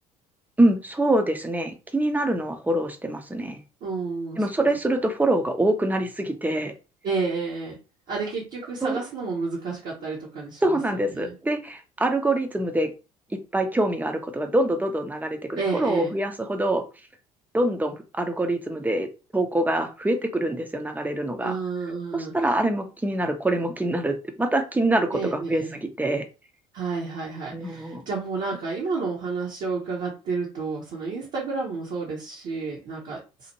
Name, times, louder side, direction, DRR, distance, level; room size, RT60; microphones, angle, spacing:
voice 1, 0.6-3.6 4.4-6.7 8.8-9.0 10.6-12.9 13.5-16.8 17.5-21.6 22.1-26.2 27.5-28.0, right 1 dB, 10° right, 6 dB, 0.6 m, -25 dB
voice 2, 3.8-4.4 7.0-7.8 8.1-10.8 11.1-11.3 15.6-16.1 21.4-22.3 25.1-25.7 26.7-33.5, right 4 dB, 50° right, -3 dB, 0.9 m, -30 dB
2.8 x 2.5 x 2.8 m, 0.31 s
figure-of-eight pair, 55°, 18 cm